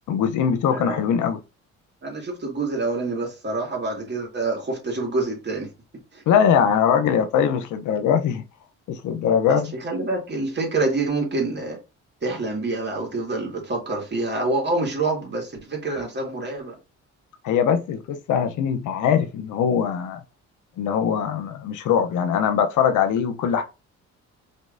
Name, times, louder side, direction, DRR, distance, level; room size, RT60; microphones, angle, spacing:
voice 1, 0.1-1.4 6.3-8.4 8.9-9.7 17.4-20.2 20.8-23.6, left 8 dB, 80° left, 0.8 m, -21 dB
voice 2, 2.0-5.7 6.1-6.2 9.5-11.8 12.2-16.7, right 3 dB, 35° right, 2.4 m, -27 dB
5.3 x 3.2 x 2.6 m
cardioid pair, 90°, 30 cm